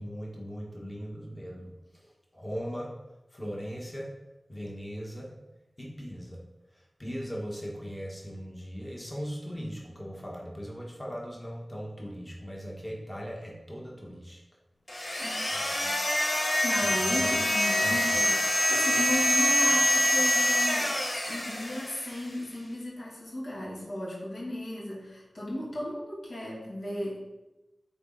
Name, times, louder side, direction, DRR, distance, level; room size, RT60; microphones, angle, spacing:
voice 1, 0.0-2.9 3.3-4.1 4.5-5.3 5.8-6.4 6.7-14.4 15.5-15.7 16.8-17.4 17.8-18.0, equal, 15° left, -2 dB, 1.3 m, -39 dB
sound 1, 14.9-22.3, left 1 dB, 55° left, 1.4 m, -26 dB
voice 2, 16.6-20.9 21.3-27.2, left 1 dB, 80° left, -5 dB, 2.4 m, -35 dB
8.8 x 4.1 x 3.8 m, 1.0 s
wide cardioid pair, 80°, 0 cm